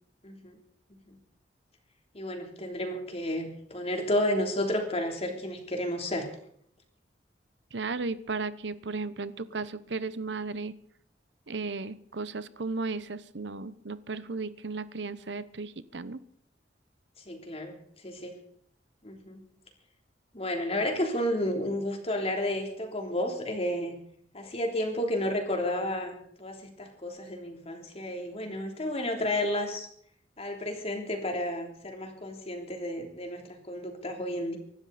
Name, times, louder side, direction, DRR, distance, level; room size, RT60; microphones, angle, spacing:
voice 1, 0.2-0.5 1.1-1.2 2.1-6.3 17.2-17.8 18.0-18.3 19.0-19.4 20.3-24.0 24.3-29.9 30.4-34.6, left 1 dB, 35° left, 3 dB, 3.3 m, -31 dB
voice 2, 7.7-10.8 11.5-16.2, right 3 dB, 85° right, 15 dB, 0.9 m, -35 dB
24.5 x 12.5 x 4.2 m, 0.63 s
head